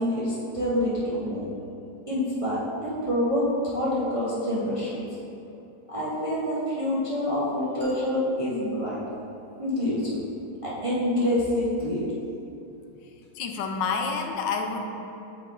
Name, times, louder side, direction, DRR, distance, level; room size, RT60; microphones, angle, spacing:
voice 1, 0.0-1.5 2.1-5.0 5.9-9.0 9.6-10.2 10.6-12.2, left 1 dB, 60° right, -8 dB, 0.3 m, -27 dB
sound 1, 7.8-9.9, left 1 dB, 30° left, 1.1 m, -45 dB
voice 2, 13.4-14.8, left 5 dB, 90° left, 4 dB, 1.3 m, -28 dB
7.9 x 3.3 x 3.8 m, 2.8 s
omnidirectional pair, 1.9 m